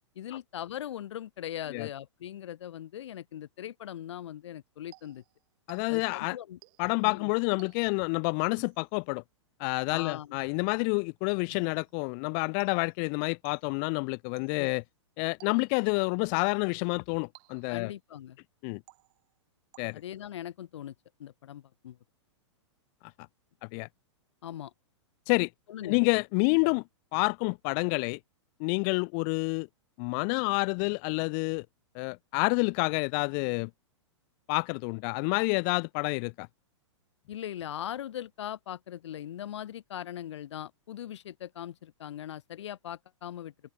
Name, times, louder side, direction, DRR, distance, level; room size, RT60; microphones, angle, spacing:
voice 1, 0.1-5.2 5.9-6.6 7.0-7.3 9.9-10.4 14.6-14.7 17.7-18.4 19.9-20.9 21.2-22.0 24.4-24.7 25.7-26.0 37.3-43.5, left 11 dB, 65° left, 0.9 m, -40 dB
sound 1, 4.9-6.2 6.6-7.0 7.6-8.1 8.6-9.0 9.9-10.4 11.5-12.0 12.6-13.0 13.4-13.8 14.4-14.8 15.4-15.9 16.4-16.8 17.3-17.9 18.9-19.4 19.7-20.2, right 31 dB, 45° right, 6.3 m, -59 dB
voice 2, 5.7-6.4 6.8-9.2 9.6-14.8 15.2-17.9 18.6-18.8 19.8-20.0 23.7-23.9 25.3-25.5 25.8-26.8 27.1-28.2 28.6-29.7 30.0-31.7 31.9-33.7 34.5-36.5, left 40 dB or more, 40° left, 0.7 m, -28 dB
open air
hypercardioid pair, 115°, 16 cm